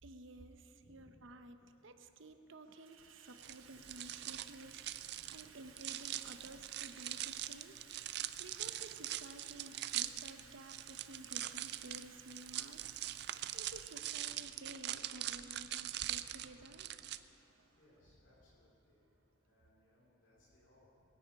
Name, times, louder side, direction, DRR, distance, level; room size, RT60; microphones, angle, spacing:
voice 1, 0.0-7.8 8.4-12.9 13.5-16.9, right 1 dB, 75° right, 8 dB, 0.8 m, -54 dB
Water tap faucet / Sink (filling or washing), 0.7-0.8 1.8-2.2 2.5-20.1, right 6 dB, 90° right, 1.2 m, -61 dB
voice 2, 0.8-1.2 5.3-5.6 8.4-8.7 13.1-13.4 17.4-17.5 17.8-21.0, left 1 dB, 65° left, -6 dB, 2.8 m, -68 dB
sound 1, 3.4-17.2, right 13 dB, 55° right, 0.4 m, -42 dB
22.0 x 9.9 x 5.3 m, 3.0 s
head